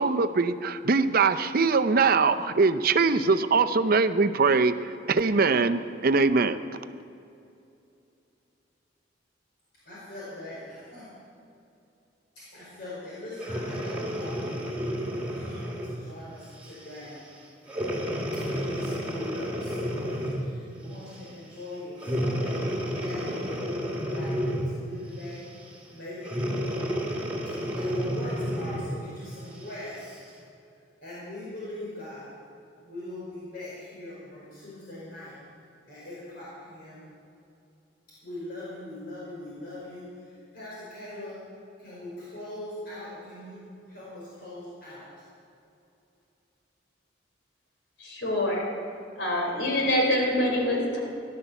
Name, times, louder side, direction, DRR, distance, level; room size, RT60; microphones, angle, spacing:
voice 1, 0.0-6.6, right 4 dB, 55° right, 11 dB, 0.7 m, -22 dB
voice 2, 9.8-11.0 12.5-14.7 15.1-17.2 18.5-24.3 24.7-25.4 25.9-26.4 27.6-30.2 31.0-32.3 32.8-35.3 35.9-37.0 38.2-41.4 41.8-43.6 43.9-45.0, left 1 dB, 60° left, -8 dB, 5.1 m, -41 dB
Breathing, 13.4-16.0 16.6-16.9 17.7-20.6 22.0-24.9 26.2-29.0 29.6-29.7, equal, 10° right, 2.3 m, -30 dB
voice 3, 48.0-48.7 49.2-51.0, left 1 dB, 80° left, 0 dB, 3.9 m, -25 dB
16.5 x 12.0 x 7.1 m, 2.6 s
head